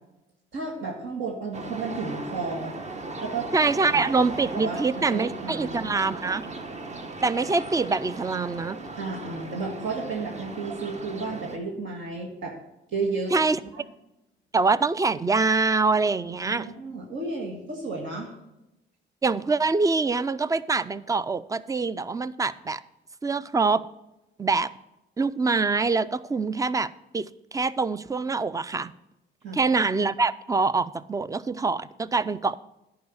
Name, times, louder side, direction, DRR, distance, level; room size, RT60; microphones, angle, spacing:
voice 1, 0.5-2.7 3.2-3.5 3.9-5.9 9.0-12.6 12.9-13.4 13.7-13.8 16.2-18.3 29.4-29.6, right 3 dB, 75° right, -1 dB, 1.7 m, -33 dB
sound 1, 1.5-11.6, right 3 dB, 35° right, 1.0 m, -37 dB
voice 2, 3.5-6.5 7.2-8.8 13.3-13.6 14.5-16.7 19.2-22.8 23.2-23.8 24.4-24.7 25.2-26.9 27.1-27.3 27.5-28.9 29.5-32.6, right 4 dB, 15° right, 17 dB, 0.4 m, -24 dB
10.5 x 4.8 x 7.1 m, 0.92 s
cardioid pair, 90°, 20 cm